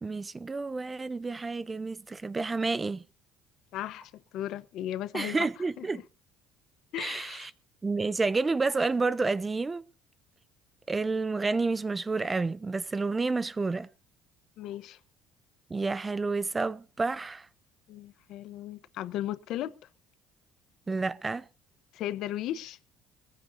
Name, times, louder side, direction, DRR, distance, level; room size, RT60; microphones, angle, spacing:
voice 1, 0.0-3.0 5.1-6.0 7.0-7.5 7.8-9.9 10.9-13.9 15.7-17.5 20.9-21.5, right 3 dB, 20° right, 0.6 m, -30 dB
voice 2, 3.7-5.5 5.8-6.0 6.9-7.5 14.6-15.0 17.9-19.8 21.9-22.8, left 12 dB, 70° left, 1.0 m, -36 dB
21.5 x 15.0 x 2.7 m
cardioid pair, 110°, 0 cm